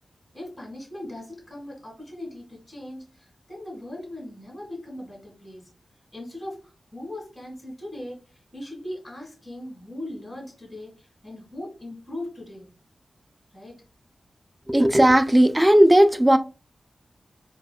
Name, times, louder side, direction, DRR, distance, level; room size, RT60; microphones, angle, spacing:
voice 1, 0.3-5.7 6.1-6.6 6.9-12.7 13.5-13.7, left 1 dB, 20° left, 1.8 m, -39 dB
voice 2, 14.7-16.4, right 1 dB, 15° right, 0.4 m, -16 dB
4.6 x 2.3 x 2.2 m
cardioid pair, 60°, 0 cm